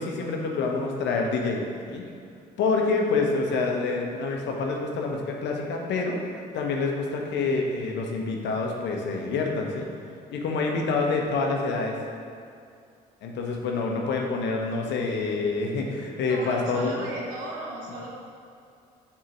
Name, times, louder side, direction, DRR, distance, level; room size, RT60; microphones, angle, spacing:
voice 1, 0.0-1.6 1.9-2.0 2.6-6.2 6.5-9.9 10.3-12.0 13.2-17.1, left 3 dB, 60° left, 1 dB, 1.0 m, -27 dB
voice 2, 16.3-18.1, right 2 dB, 70° right, -3 dB, 1.3 m, -36 dB
7.4 x 3.7 x 4.6 m, 2.4 s
hypercardioid pair, 50°, 21 cm